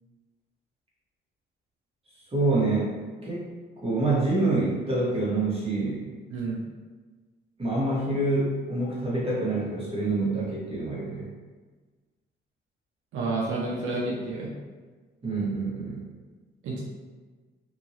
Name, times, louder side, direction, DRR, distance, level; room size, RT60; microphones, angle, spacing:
voice 1, 2.3-6.1 7.6-11.3 15.2-16.1, right 2 dB, 30° right, -6 dB, 1.3 m, -27 dB
voice 2, 13.1-14.5 16.6-16.8, right 2 dB, 85° right, -4 dB, 0.7 m, -29 dB
2.9 x 2.7 x 2.8 m, 1.4 s
cardioid pair, 90°, 20 cm